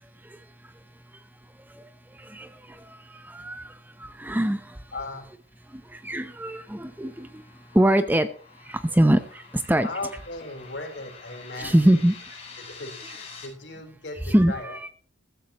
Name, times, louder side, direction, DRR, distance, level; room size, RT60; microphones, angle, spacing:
voice 1, 0.0-0.7 1.1-1.2 1.6-4.9 5.7-8.3 8.6-9.9 11.6-12.1 14.3-14.9, right 1 dB, 10° right, 10 dB, 0.7 m, -24 dB
voice 2, 4.9-5.3 9.8-12.0 12.6-14.9, left 2 dB, 60° left, 3 dB, 4.0 m, -37 dB
sound 1, 5.7-13.5, left 5 dB, 30° left, 5.5 m, -47 dB
15.0 x 14.5 x 3.0 m, 0.42 s
head